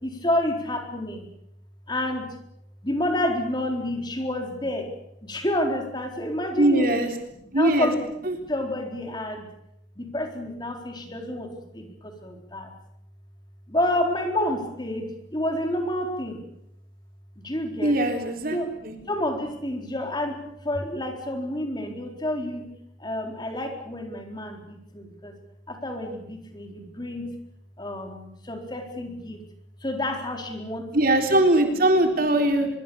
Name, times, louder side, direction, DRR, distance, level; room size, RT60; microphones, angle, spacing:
voice 1, 0.0-1.3 1.9-2.3 2.8-4.9 5.2-7.0 7.5-8.0 8.5-9.5 10.0-12.7 13.7-16.4 17.4-17.9 18.5-20.4 20.6-22.7 23.0-25.3 25.7-27.3 27.8-29.4 29.8-30.9, left 1 dB, 25° left, 3 dB, 4.1 m, -29 dB
voice 2, 6.6-7.1 7.5-7.9 8.2-8.4 17.8-18.6 18.8-19.0 30.9-32.7, right 1 dB, 50° right, 4 dB, 3.9 m, -21 dB
24.0 x 24.0 x 7.1 m, 0.79 s
head